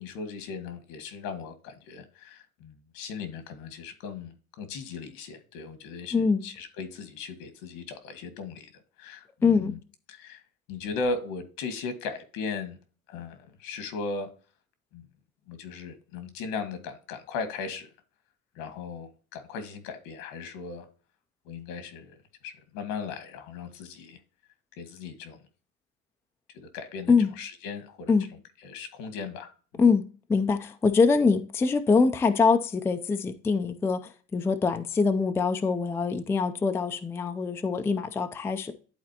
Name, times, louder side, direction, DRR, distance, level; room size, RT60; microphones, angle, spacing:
voice 1, 0.0-8.7 9.0-9.8 10.1-10.4 10.7-12.8 13.1-14.3 14.9-15.0 15.5-17.9 18.6-20.9 21.5-22.2 22.4-24.2 24.7-25.4 26.5-28.2 28.6-29.5 29.7-29.8, left 4 dB, 85° left, 1.8 m, -37 dB
voice 2, 6.1-6.5 9.4-9.7 27.1-27.3 28.1-28.3 29.8-30.0 30.3-34.0 34.3-38.7, left 4 dB, 10° left, 0.3 m, -24 dB
11.0 x 4.2 x 2.8 m
cardioid pair, 150°, 34 cm